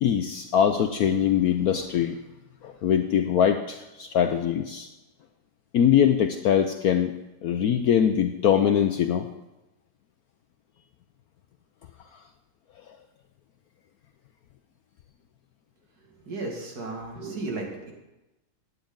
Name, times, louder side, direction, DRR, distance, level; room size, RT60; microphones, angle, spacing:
voice 1, 0.0-2.2 2.6-4.9 5.7-7.1 7.4-9.3, left 9 dB, 75° left, 7 dB, 0.8 m, -22 dB
voice 2, 16.3-17.9, right 3 dB, 50° right, 1 dB, 2.5 m, -34 dB
15.5 x 9.6 x 3.9 m, 0.98 s
omnidirectional pair, 2.2 m